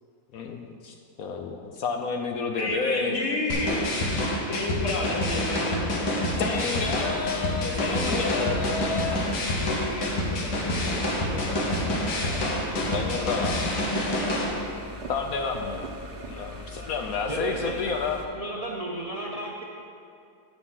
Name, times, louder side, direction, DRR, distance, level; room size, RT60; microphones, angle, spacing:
voice 1, 0.3-3.2 6.4-9.2 12.7-13.7 15.1-15.9 16.3-18.2, left 5 dB, 70° left, 4 dB, 0.9 m, -30 dB
voice 2, 2.6-3.9 4.5-7.0 7.6-8.8 9.5-12.6 14.2-14.7 15.6-15.8, left 2 dB, 50° left, 0 dB, 1.5 m, -33 dB
sound 1, 3.5-14.5, left 1 dB, 90° left, 1.8 m, -27 dB
sound 2, 6.7-18.3, equal, 40° right, 0.7 m, -41 dB
voice 3, 17.3-17.8 18.3-19.6, right 2 dB, 80° right, -1 dB, 0.3 m, -33 dB
9.2 x 6.1 x 5.7 m, 2.4 s
omnidirectional pair, 1.8 m